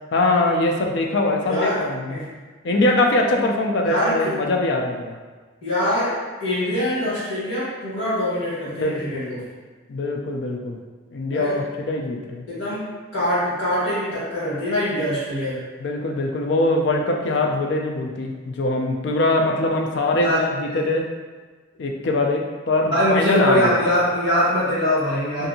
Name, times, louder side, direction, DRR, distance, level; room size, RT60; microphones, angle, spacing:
voice 1, 0.1-2.2 2.6-5.2 8.7-9.5 9.9-10.8 11.1-12.5 15.8-21.1 21.8-23.7 25.4-25.5, left 2 dB, 60° left, 2 dB, 0.4 m, -22 dB
voice 2, 1.4-1.8 2.1-2.3 3.8-4.4 5.6-6.1 6.4-9.4 11.3-11.6 12.5-12.9 13.1-15.6 20.2-20.4 20.6-20.8 22.9-25.5, equal, 85° left, -9 dB, 1.5 m, -23 dB
2.7 x 2.5 x 2.7 m, 1.4 s
head